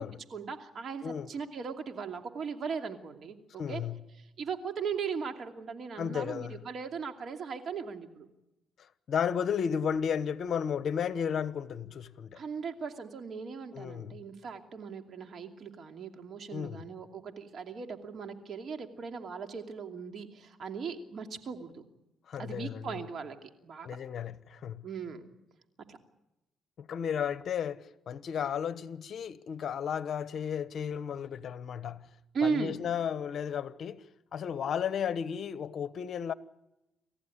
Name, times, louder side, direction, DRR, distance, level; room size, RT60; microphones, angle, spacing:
voice 1, 0.3-3.8 4.4-8.3 12.3-21.8 22.4-24.0 24.8-25.2 25.9-26.0 32.3-32.8, right 6 dB, 55° right, 2.7 m, -38 dB
voice 2, 3.6-4.0 6.0-6.6 8.8-12.4 13.7-14.2 16.5-16.9 22.3-23.0 23.8-24.9 26.8-32.1 32.4-34.0 34.3-36.3, left 7 dB, 60° left, 1.1 m, -34 dB
28.5 x 15.0 x 9.8 m
cardioid pair, 90°, 0 cm